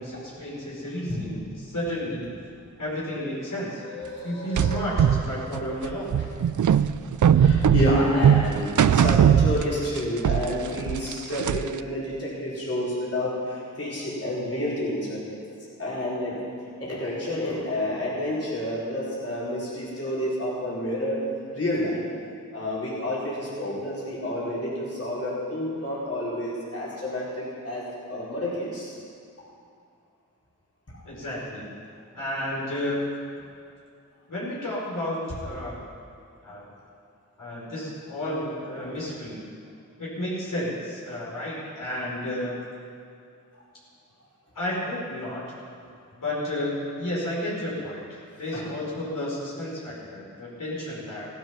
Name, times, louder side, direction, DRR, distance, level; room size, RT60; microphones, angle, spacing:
voice 1, 0.0-2.3 2.8-3.8 4.2-6.2 31.0-31.7 32.1-33.0 34.3-35.8 36.4-36.6 37.4-39.6 40.0-42.5 44.5-45.4 46.1-48.0 48.4-51.3, left 1 dB, 70° left, -7 dB, 4.8 m, -32 dB
voice 2, 3.8-4.9 5.4-5.5 7.3-15.2 15.8-16.4 16.8-21.2 21.5-22.0 22.5-28.9 48.5-48.7, left 1 dB, 45° left, -8 dB, 4.6 m, -29 dB
sound 1, 4.6-10.0 10.2-11.8, right 8 dB, 65° right, 0.5 m, -20 dB
16.0 x 11.5 x 5.9 m, 2.3 s
wide cardioid pair, 60°, 33 cm